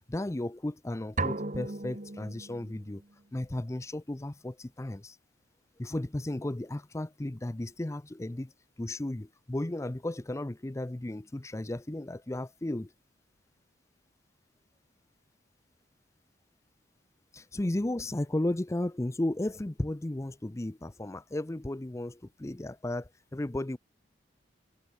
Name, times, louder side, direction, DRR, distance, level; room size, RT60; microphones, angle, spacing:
voice 1, 0.1-3.0 3.3-5.2 5.8-8.5 8.8-12.9 17.3-23.8, left 1 dB, 15° left, 0.5 m, -34 dB
sound 1, 1.2-3.0, right 3 dB, 40° right, 1.6 m, -35 dB
head